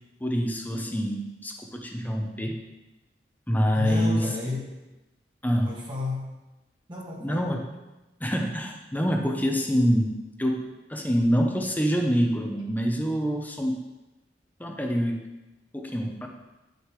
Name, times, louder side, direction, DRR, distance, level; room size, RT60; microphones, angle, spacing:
voice 1, 0.2-2.6 3.5-4.2 5.4-5.7 7.2-7.6 8.2-13.8 14.6-15.3 15.7-16.3, equal, 10° left, 2 dB, 1.0 m, -26 dB
voice 2, 3.7-4.7 5.6-6.3 6.9-7.6, left 3 dB, 30° right, -4 dB, 1.6 m, -33 dB
9.6 x 6.7 x 4.8 m, 1.0 s
head